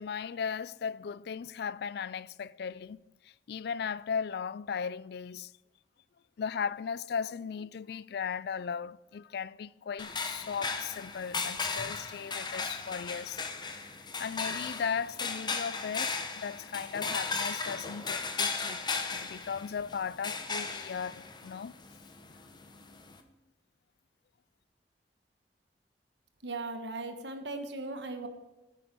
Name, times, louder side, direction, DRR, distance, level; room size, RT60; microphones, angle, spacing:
voice 1, 0.0-5.5 6.4-13.4 13.7-13.8 14.2-18.9 19.1-21.8, left 6 dB, 65° left, 0.4 m, -37 dB
sound 1, 10.0-23.2, left 4 dB, 25° left, 0.9 m, -36 dB
voice 2, 26.4-28.3, right 2 dB, 80° right, 1.4 m, -38 dB
10.0 x 8.3 x 6.1 m
head